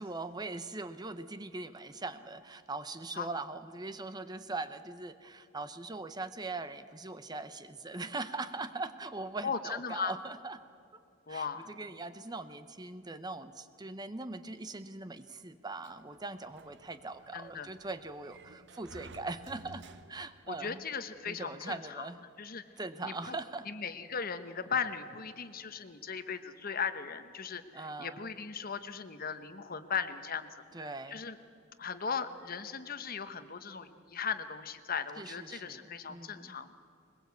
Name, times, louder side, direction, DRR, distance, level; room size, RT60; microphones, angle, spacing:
voice 1, 0.0-10.6 11.3-20.8 21.3-22.2 22.8-23.7 27.7-28.3 30.7-31.2 35.2-36.6, right 3 dB, 20° right, 11 dB, 0.8 m, -41 dB
voice 2, 9.4-10.1 11.3-11.7 17.3-17.7 20.5-22.1 22.4-22.6 23.0-23.3 23.7-30.5 30.8-31.4 31.8-36.7, left 6 dB, 45° left, 11 dB, 1.1 m, -37 dB
Sliding door, 15.8-20.5, right 2 dB, 60° right, 1.0 m, -54 dB
21.5 x 21.0 x 8.3 m, 2.4 s
head